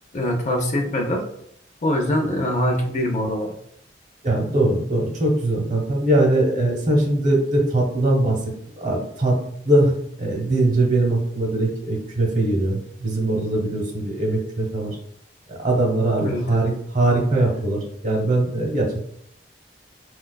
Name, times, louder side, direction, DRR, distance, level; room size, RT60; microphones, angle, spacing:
voice 1, 0.1-1.2 1.8-3.5 16.2-16.6, left 1 dB, 40° left, 2 dB, 0.5 m, -23 dB
voice 2, 4.2-8.4 8.8-9.4 9.6-9.9 10.2-15.0 15.5-19.1, right 1 dB, 45° right, 0 dB, 0.8 m, -21 dB
4.7 x 2.3 x 2.2 m, 0.72 s
head